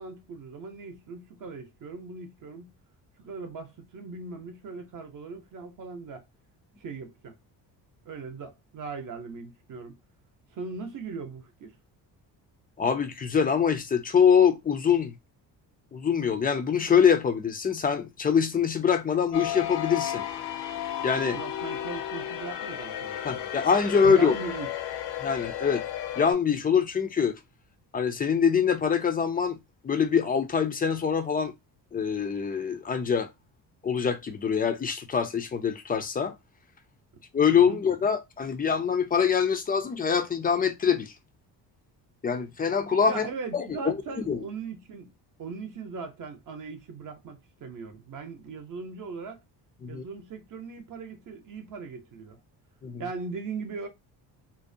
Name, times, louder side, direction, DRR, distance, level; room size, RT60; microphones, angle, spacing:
voice 1, 0.0-2.7 3.2-6.2 6.8-7.4 8.1-10.0 10.5-11.7 21.3-23.4 24.0-24.7 37.1-37.2 37.5-37.8 43.1-49.4 49.9-52.4 53.0-53.9, right 4 dB, 50° right, 0.7 m, -39 dB
voice 2, 12.8-15.1 15.9-20.2 21.0-21.4 23.2-24.3 25.2-25.8 26.2-27.4 27.9-29.6 29.8-31.5 31.9-33.3 33.8-36.3 37.3-41.1 42.2-43.2 43.5-44.0 44.3-44.4 49.8-50.0 52.8-53.0, left 7 dB, 25° left, 0.3 m, -24 dB
sound 1, 19.3-26.3, left 11 dB, 70° left, 0.6 m, -33 dB
2.5 x 2.0 x 2.6 m
cardioid pair, 105°, 42 cm